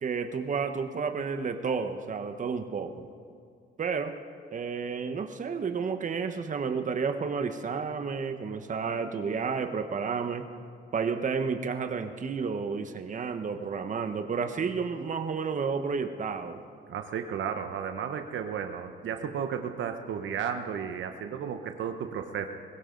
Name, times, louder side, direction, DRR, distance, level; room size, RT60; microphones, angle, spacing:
voice 1, 0.0-3.1 3.8-4.1 4.5-10.5 10.9-16.6, right 5 dB, 40° right, 7 dB, 1.1 m, -31 dB
voice 2, 16.9-22.5, right 7 dB, 70° right, 6 dB, 1.0 m, -33 dB
21.5 x 16.0 x 3.9 m, 2.3 s
cardioid pair, 90°, 20 cm